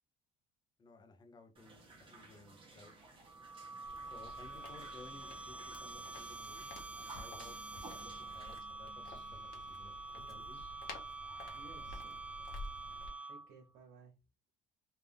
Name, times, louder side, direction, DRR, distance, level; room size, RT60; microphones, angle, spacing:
voice 1, 0.8-2.9 4.1-7.6 8.0-9.9 10.3-10.7, left 3 dB, 25° left, 0.9 m, -58 dB
sound 1, 1.6-8.6, right 2 dB, 30° right, 1.3 m, -57 dB
sound 2, 3.3-13.7, right 3 dB, 5° right, 0.3 m, -47 dB
sound 3, 3.8-13.1, left 3 dB, 60° left, 1.3 m, -52 dB
voice 2, 11.5-12.3 13.3-14.2, right 3 dB, 80° right, 1.2 m, -58 dB
3.7 x 2.8 x 3.4 m
cardioid pair, 120°, 17 cm